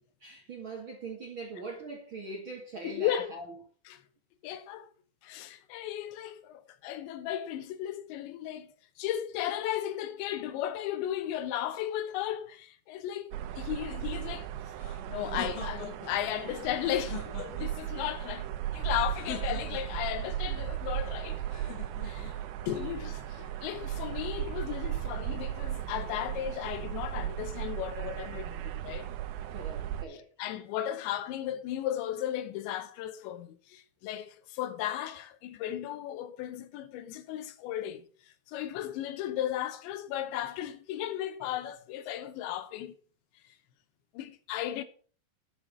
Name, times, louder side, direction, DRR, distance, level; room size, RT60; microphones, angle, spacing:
voice 1, 0.2-3.6 29.5-30.3, right 3 dB, 45° right, 1.7 m, -41 dB
voice 2, 2.8-3.3 4.4-4.9 5.2-8.7 9.0-13.3 13.6-14.5 15.1-21.4 22.0-22.3 22.6-29.1 30.1-38.0 38.5-42.9 44.1-44.8, left 11 dB, 85° left, 3.2 m, -35 dB
sound 1, 13.3-30.0, right 12 dB, 80° right, 3.0 m, -36 dB
sound 2, 14.8-16.1 16.8-17.8 19.1-20.0 21.5-22.4, left 7 dB, 55° left, 4.7 m, -43 dB
11.5 x 7.4 x 6.2 m
omnidirectional pair, 5.2 m